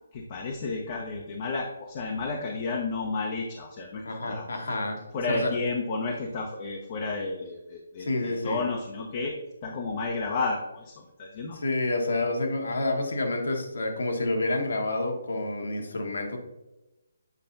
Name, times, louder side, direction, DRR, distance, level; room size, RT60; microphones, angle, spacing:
voice 1, 0.1-4.5 5.1-9.3 9.6-10.9 11.2-11.6, left 3 dB, 35° left, 0 dB, 0.9 m, -32 dB
voice 2, 4.0-5.5 8.0-8.6 11.6-16.4, left 2 dB, 65° left, 2 dB, 1.6 m, -29 dB
8.2 x 5.5 x 2.7 m, 1.0 s
figure-of-eight pair, 145°, 0 cm